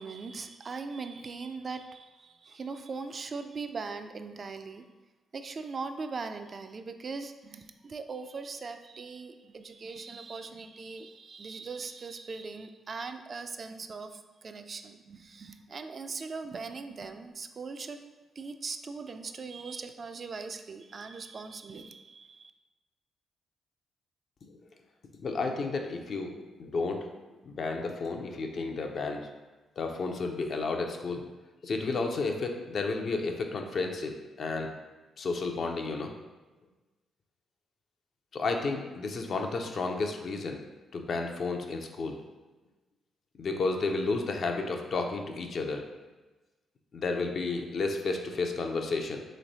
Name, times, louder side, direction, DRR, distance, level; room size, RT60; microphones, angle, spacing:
voice 1, 0.0-4.9 5.3-18.0 18.4-22.5, right 4 dB, 50° right, 8 dB, 0.3 m, -40 dB
voice 2, 25.2-27.1 27.4-29.3 29.8-31.2 31.6-34.7 35.2-36.1 38.3-40.6 40.9-42.2 43.4-45.9 46.9-49.2, left 3 dB, 60° left, 3 dB, 0.5 m, -32 dB
3.2 x 3.1 x 4.0 m, 1.2 s
supercardioid pair, 50°, 0 cm